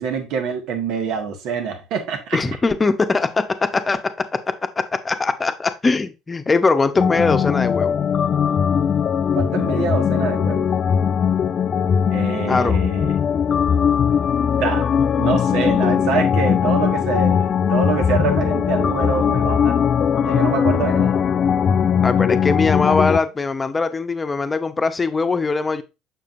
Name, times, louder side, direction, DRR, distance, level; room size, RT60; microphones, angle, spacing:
voice 1, 0.0-2.4 9.3-10.7 12.1-13.1 14.5-14.9 15.2-19.8 20.2-21.2, right 6 dB, 65° right, 1.4 m, -25 dB
voice 2, 2.3-8.0 12.5-12.8 22.0-25.8, left 4 dB, 25° left, 0.9 m, -21 dB
sound 1, 6.9-23.2, left 7 dB, 45° left, 0.4 m, -19 dB
6.8 x 6.0 x 2.6 m
hypercardioid pair, 70°, 0 cm